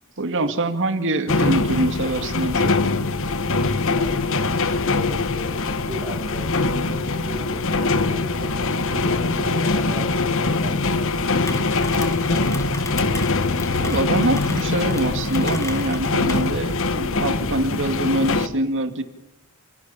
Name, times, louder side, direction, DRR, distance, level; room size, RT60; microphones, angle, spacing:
voice 1, 0.2-2.7 13.8-19.0, right 1 dB, 60° right, 8 dB, 2.2 m, -24 dB
sound 1, 1.3-18.5, left 3 dB, 65° left, 1.6 m, -23 dB
voice 2, 3.9-11.2 11.8-12.5, right 1 dB, 15° right, 2 dB, 4.4 m, -38 dB
Rain, 11.3-16.5, left 1 dB, 15° left, 2.3 m, -35 dB
28.5 x 17.0 x 8.8 m, 0.91 s
head